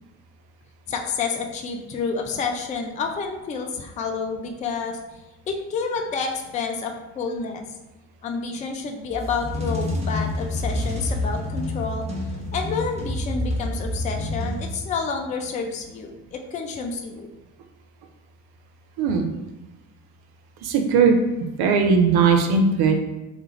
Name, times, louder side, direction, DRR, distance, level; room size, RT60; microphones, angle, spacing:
voice 1, 0.9-5.0 5.5-7.6 8.2-12.1 12.5-17.3, left 5 dB, 20° left, 4 dB, 0.3 m, -29 dB
sound 1, 9.1-15.1, left 1 dB, 15° right, 0.9 m, -28 dB
voice 2, 19.0-19.3 20.6-21.2 21.6-23.0, right 5 dB, 55° right, 4 dB, 0.6 m, -18 dB
3.4 x 2.4 x 3.0 m, 1.1 s
figure-of-eight pair, 45°, 48 cm